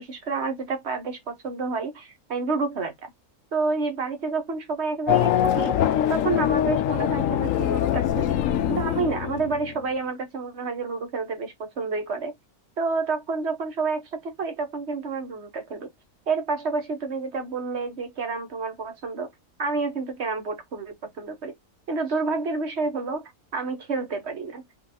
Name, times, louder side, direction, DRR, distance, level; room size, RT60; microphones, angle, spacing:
voice 1, 0.0-3.1 3.5-5.7 6.1-8.3 8.7-12.3 12.8-15.9 16.3-19.3 19.6-21.5 21.9-24.6, right 4 dB, 50° right, 1.3 m, -29 dB
Race car auto racing / Accelerating revving vroom, 5.1-9.8, left 11 dB, 70° left, 0.9 m, -23 dB
5.4 x 2.8 x 2.8 m
omnidirectional pair, 1.5 m